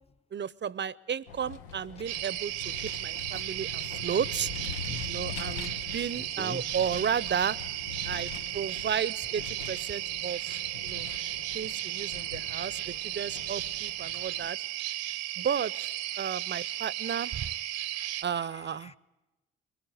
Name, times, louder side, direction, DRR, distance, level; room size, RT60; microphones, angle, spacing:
voice 1, 0.3-4.5 5.1-7.6 8.0-10.6 10.8-11.1 11.5-14.6 15.4-15.7 16.2-17.5 18.2-18.9, right 8 dB, 40° right, 0.8 m, -33 dB
Vehicle, 1.3-14.5, left 8 dB, 80° left, 0.9 m, -44 dB
sound 1, 2.1-18.2, right 15 dB, 75° right, 0.9 m, -35 dB
voice 2, 6.2-6.7 10.5-10.6 12.0-12.1 16.1-18.2 18.8-19.0, left 3 dB, 20° left, 0.9 m, -46 dB
22.5 x 22.0 x 9.2 m
hypercardioid pair, 45°, 29 cm